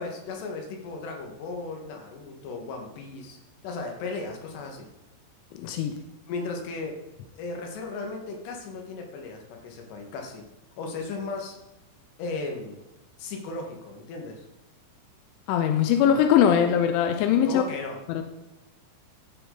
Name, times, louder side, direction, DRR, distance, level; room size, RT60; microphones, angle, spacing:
voice 1, 0.0-4.9 6.3-7.0 7.4-10.5 10.8-11.6 12.2-12.8 13.2-14.5 17.5-18.0, left 3 dB, 70° left, 2 dB, 3.7 m, -36 dB
voice 2, 5.5-5.9 15.5-17.6 18.1-18.2, left 9 dB, 90° left, 6 dB, 3.2 m, -21 dB
13.5 x 8.2 x 4.0 m, 1.0 s
omnidirectional pair, 5.4 m